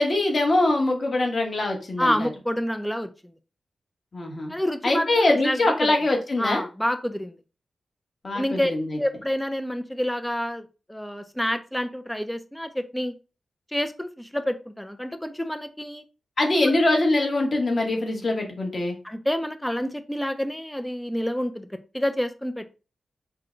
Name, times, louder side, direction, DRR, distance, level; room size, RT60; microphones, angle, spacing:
voice 1, 0.0-2.3 4.1-4.5 4.8-6.6 8.2-9.0 16.4-19.0, left 2 dB, 45° left, 1 dB, 1.3 m, -23 dB
voice 2, 2.0-3.3 4.5-5.9 6.4-7.4 8.3-8.7 9.0-13.1 13.7-16.0 16.7-16.8 19.0-21.7 21.9-22.7, equal, 5° left, 9 dB, 0.5 m, -28 dB
5.7 x 2.2 x 3.9 m, 0.33 s
wide cardioid pair, 120°, 0 cm